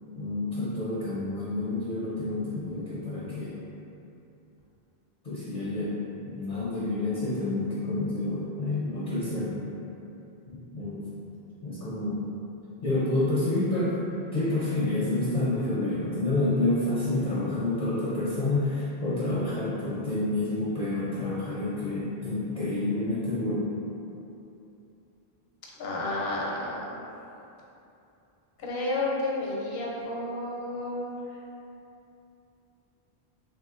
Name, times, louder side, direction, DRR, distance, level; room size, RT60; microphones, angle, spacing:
voice 1, 0.2-3.5 5.2-5.9 6.2-9.6 10.5-11.0 11.6-12.2 12.8-14.0 14.3-23.7, left 2 dB, 55° left, -8 dB, 0.5 m, -28 dB
voice 2, 25.8-27.0 28.6-31.2, left 2 dB, 80° left, -4 dB, 0.9 m, -31 dB
3.2 x 2.9 x 2.4 m, 2.8 s
omnidirectional pair, 1.0 m